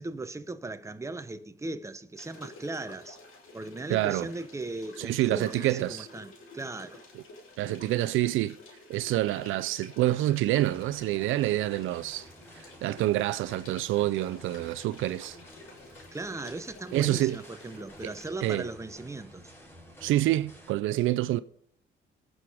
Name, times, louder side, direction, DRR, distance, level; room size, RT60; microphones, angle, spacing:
voice 1, 0.0-3.2 3.5-7.0 16.1-19.5, right 2 dB, 15° right, 0.9 m, -38 dB
sound 1, 2.1-18.3, left 2 dB, 85° left, 3.0 m, -51 dB
voice 2, 3.9-4.3 5.0-6.1 7.1-7.2 7.6-8.6 8.9-12.3 12.6-15.4 16.9-17.4 18.0-18.1 18.4-18.7 20.0-21.4, right 15 dB, 85° right, 0.4 m, -27 dB
sound 2, 10.5-20.7, equal, 10° left, 5.4 m, -52 dB
19.0 x 6.3 x 5.0 m
cardioid pair, 90°, 20 cm